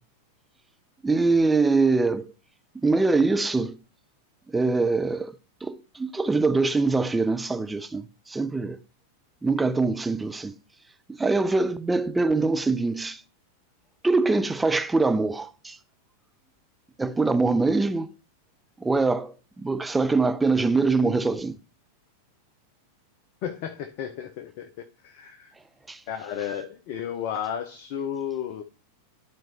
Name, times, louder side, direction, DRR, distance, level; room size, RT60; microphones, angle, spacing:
voice 1, 1.0-2.3 2.8-3.8 4.5-5.4 5.6-8.8 9.4-10.5 11.2-13.2 14.0-15.8 17.0-18.1 18.8-21.6 25.9-26.0, right 3 dB, 10° right, 0.4 m, -23 dB
voice 2, 23.4-25.5 26.1-28.6, left 9 dB, 45° left, 0.7 m, -33 dB
12.0 x 4.4 x 2.9 m
figure-of-eight pair, 90°, 0 cm